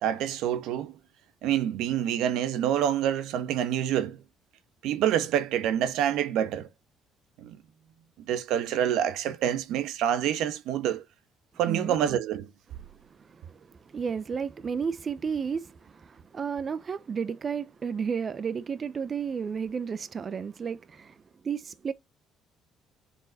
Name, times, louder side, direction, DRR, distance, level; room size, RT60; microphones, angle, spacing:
voice 1, 0.0-0.9 1.4-4.2 4.8-6.7 7.4-7.6 8.3-11.0 11.6-12.5, right 10 dB, 85° right, 1.1 m, -27 dB
voice 2, 11.7-12.0 12.8-12.9 13.2-21.2 21.4-21.9, right 6 dB, 35° right, 0.6 m, -32 dB
7.3 x 6.6 x 4.1 m
cardioid pair, 130°, 0 cm